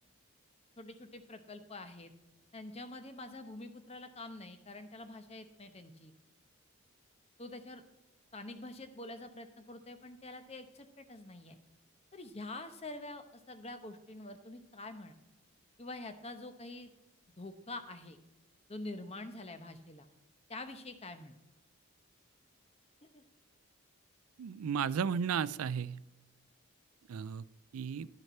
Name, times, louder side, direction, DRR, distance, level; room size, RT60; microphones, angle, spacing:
voice 1, 0.8-2.1 2.5-6.1 7.4-7.8 8.3-11.6 12.1-15.2 15.8-16.9 17.4-18.2 18.7-20.1 20.5-21.4 23.0-23.2, left 2 dB, 30° left, 9 dB, 0.9 m, -46 dB
voice 2, 24.4-26.0 27.1-27.4 27.7-28.1, right 7 dB, 80° right, 18 dB, 0.4 m, -34 dB
12.0 x 6.5 x 4.2 m, 1.0 s
head